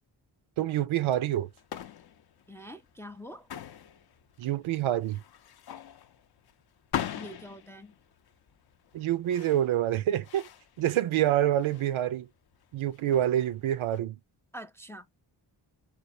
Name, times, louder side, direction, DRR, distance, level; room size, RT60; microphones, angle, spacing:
voice 1, 0.6-1.5 4.4-5.2 8.9-10.4 10.8-12.3 12.7-14.2, right 12 dB, 85° right, 0.6 m, -27 dB
sound 1, 1.0-14.0, left 10 dB, 55° left, 0.6 m, -42 dB
voice 2, 2.5-3.5 7.1-7.9 14.5-15.2, equal, 5° left, 0.4 m, -45 dB
3.5 x 2.4 x 2.6 m
cardioid pair, 70°, 47 cm